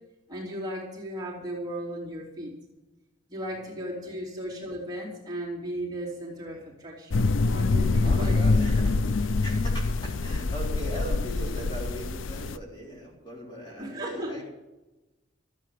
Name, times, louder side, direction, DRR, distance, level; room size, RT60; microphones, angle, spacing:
voice 1, 0.3-2.5 3.3-8.6 13.8-14.4, right 1 dB, 20° right, -5 dB, 3.0 m, -36 dB
voice 2, 3.3-4.1 6.1-6.7 8.0-14.4, equal, 25° left, -3 dB, 3.6 m, -40 dB
sound 1, 7.1-12.6, left 3 dB, 75° left, 0.5 m, -25 dB
14.0 x 8.4 x 7.5 m, 1.0 s
head